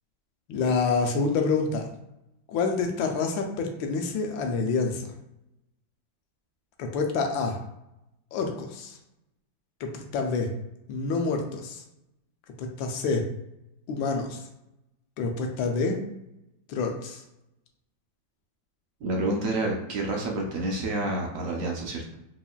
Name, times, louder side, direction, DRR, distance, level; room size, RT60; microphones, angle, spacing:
voice 1, 0.5-1.9 2.5-5.1 6.8-7.6 8.3-8.9 9.8-10.5 10.9-11.8 12.6-13.3 13.9-14.4 15.2-16.0 16.7-17.2, left 4 dB, 80° left, 3 dB, 1.3 m, -27 dB
voice 2, 19.0-22.2, right 2 dB, 65° right, -1 dB, 0.8 m, -29 dB
4.7 x 3.0 x 2.3 m, 0.86 s
omnidirectional pair, 2.1 m